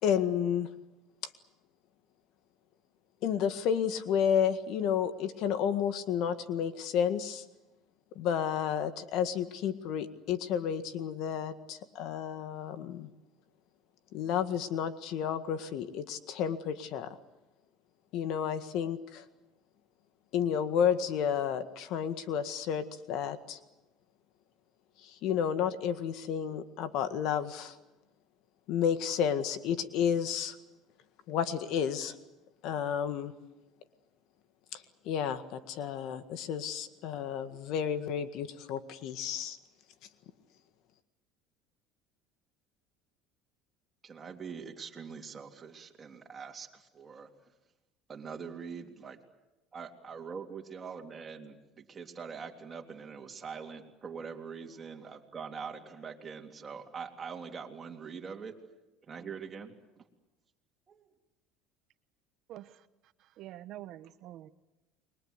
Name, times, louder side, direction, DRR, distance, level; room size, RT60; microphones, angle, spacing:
voice 1, 0.0-0.7 3.2-7.4 8.1-13.1 14.1-17.1 18.1-19.2 20.3-23.6 25.2-27.7 28.7-30.5 31.3-32.1 32.6-33.3 34.7-39.6, left 8 dB, 65° left, 10 dB, 1.8 m, -31 dB
voice 2, 44.0-47.3 48.1-49.2 49.7-58.6 59.1-60.0 60.9-61.0, right 6 dB, 25° right, 2 dB, 3.3 m, -43 dB
voice 3, 62.5-62.8 63.4-64.5, right 13 dB, 55° right, 11 dB, 1.1 m, -46 dB
29.0 x 22.5 x 8.2 m, 1.0 s
supercardioid pair, 120°, 0 cm